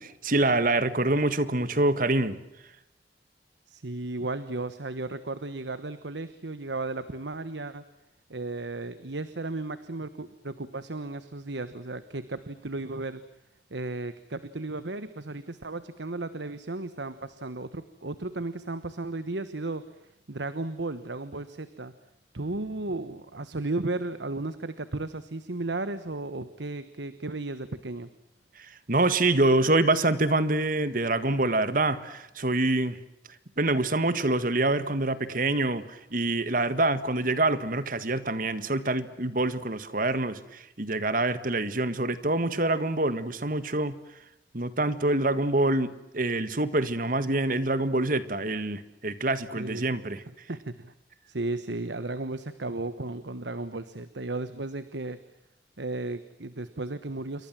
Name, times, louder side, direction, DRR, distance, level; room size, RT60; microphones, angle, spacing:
voice 1, 0.0-2.4 28.6-33.0 33.6-44.0 44.5-50.2, right 2 dB, 50° right, 13 dB, 1.7 m, -26 dB
voice 2, 3.7-7.8 8.3-13.2 13.7-19.8 20.3-21.9 22.3-28.1 49.5-49.9 50.5-50.9 51.3-55.2 55.8-57.5, right 2 dB, 80° right, 13 dB, 1.3 m, -34 dB
28.5 x 24.0 x 7.5 m, 0.88 s
head